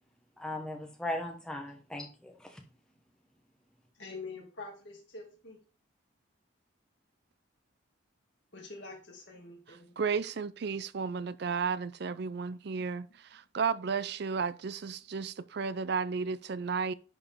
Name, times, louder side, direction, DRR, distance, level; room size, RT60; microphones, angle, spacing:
voice 1, 0.4-2.6, left 1 dB, 5° left, 1.2 m, -38 dB
voice 2, 4.0-5.6 8.5-9.9, left 3 dB, 60° left, 2.1 m, -46 dB
voice 3, 10.0-13.1 13.3-16.9, right 5 dB, 55° right, 0.4 m, -33 dB
10.5 x 4.8 x 3.6 m
head